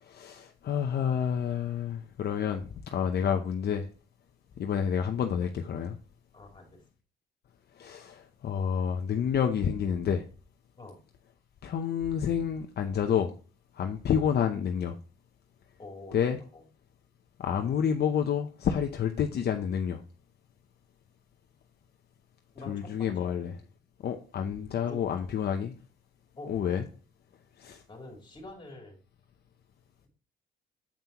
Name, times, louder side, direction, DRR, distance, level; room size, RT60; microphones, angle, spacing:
voice 1, 0.0-3.9 4.6-6.0 7.8-10.2 11.6-13.3 13.7-15.0 16.1-16.4 17.4-20.0 22.7-23.6 24.0-25.8 26.5-26.8 27.6-27.8, left 8 dB, 55° left, 5 dB, 0.7 m, -29 dB
voice 2, 6.3-6.8 10.8-11.0 15.8-16.2 16.5-16.6 22.5-23.3 24.8-25.1 26.4-26.5 27.9-29.0, left 2 dB, 25° left, 1 dB, 3.0 m, -46 dB
7.4 x 5.5 x 2.9 m, 0.37 s
cardioid pair, 90°, 20 cm